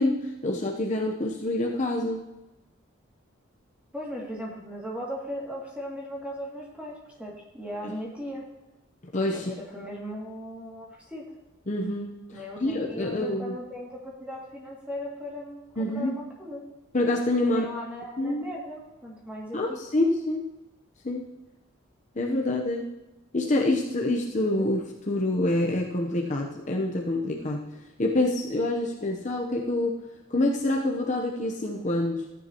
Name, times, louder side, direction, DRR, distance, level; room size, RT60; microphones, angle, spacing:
voice 1, 0.0-2.2 7.8-8.0 9.1-9.5 11.7-12.2 12.6-13.6 15.8-16.1 16.9-17.7 18.2-18.4 19.5-20.5 21.0-21.3 22.2-22.9 23.3-24.8 25.1-27.7 28.0-30.0 30.3-32.2, left 1 dB, 35° left, 0 dB, 0.9 m, -26 dB
voice 2, 3.9-8.4 9.3-11.3 12.3-16.6 17.5-19.8, equal, 5° right, -4 dB, 2.5 m, -38 dB
14.0 x 9.7 x 3.0 m, 1.0 s
head